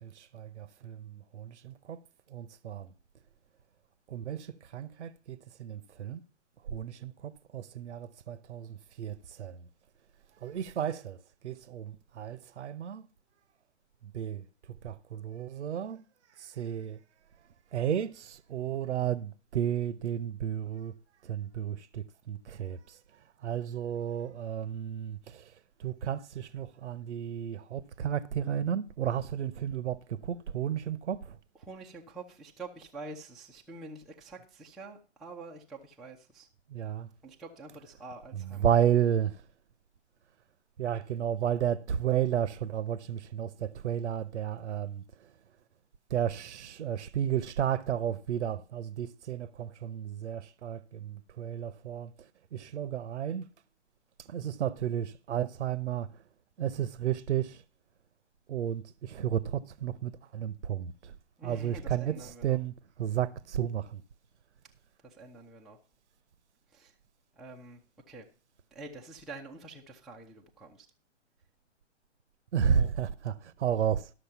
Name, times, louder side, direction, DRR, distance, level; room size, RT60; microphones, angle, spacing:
voice 1, 0.0-2.0 2.3-2.9 4.1-6.2 6.6-9.7 10.3-13.1 14.0-16.0 16.3-17.0 17.7-20.9 21.2-31.4 36.7-37.1 38.3-39.5 40.8-45.3 46.1-53.5 54.2-56.2 56.6-57.6 58.5-61.2 61.4-64.0 72.5-74.1, right 9 dB, 65° right, 0.9 m, -33 dB
voice 2, 31.6-36.5 37.2-38.7 61.4-62.6 65.0-65.8 66.7-67.0 67.4-67.8 68.1-68.3 68.7-70.9 72.7-72.9, right 3 dB, ahead, 0.5 m, -46 dB
12.5 x 6.5 x 5.7 m
hypercardioid pair, 130°, 36 cm